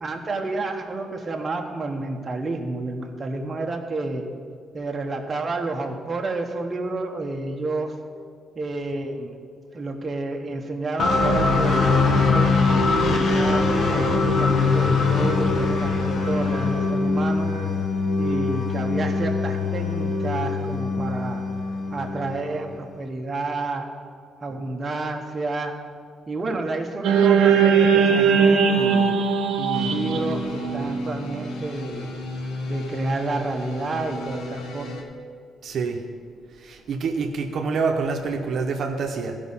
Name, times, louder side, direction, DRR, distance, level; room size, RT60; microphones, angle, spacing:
voice 1, 0.0-4.2 4.7-8.0 8.5-9.3 9.7-12.6 13.1-17.5 18.2-21.4 21.9-23.9 24.4-25.7 26.3-29.1 29.6-32.1 32.7-35.0, right 2 dB, 25° right, 2 dB, 0.9 m, -30 dB
sound 1, 11.0-22.8, left 3 dB, 50° left, 1.0 m, -22 dB
sound 2, 27.0-31.4, right 6 dB, 85° right, 0.7 m, -19 dB
sound 3, 29.7-35.0, left 1 dB, 85° left, 1.2 m, -33 dB
voice 2, 35.6-36.0 36.5-39.4, right 4 dB, 55° right, 3 dB, 0.8 m, -26 dB
15.0 x 5.2 x 5.6 m, 2.1 s
cardioid pair, 145°, 0 cm